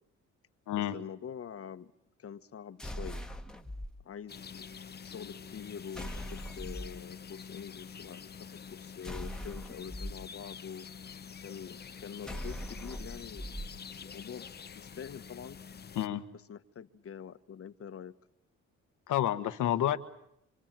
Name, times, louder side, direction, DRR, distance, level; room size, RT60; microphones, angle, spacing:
voice 1, 0.8-1.9 2.2-3.2 4.0-4.7 5.0-8.3 8.7-10.9 11.4-14.5 14.7-15.6 16.3-18.1, left 7 dB, 50° left, 10 dB, 1.3 m, -45 dB
sound 1, 2.8-3.9 5.9-7.0 9.0-10.1 12.2-13.7, equal, ahead, 1.6 m, -40 dB
sound 2, 4.3-16.1, left 6 dB, 35° left, 0.9 m, -47 dB
voice 2, 19.1-20.0, left 12 dB, 85° left, 9 dB, 1.4 m, -29 dB
27.0 x 26.0 x 7.6 m, 0.79 s
cardioid pair, 90°, 30 cm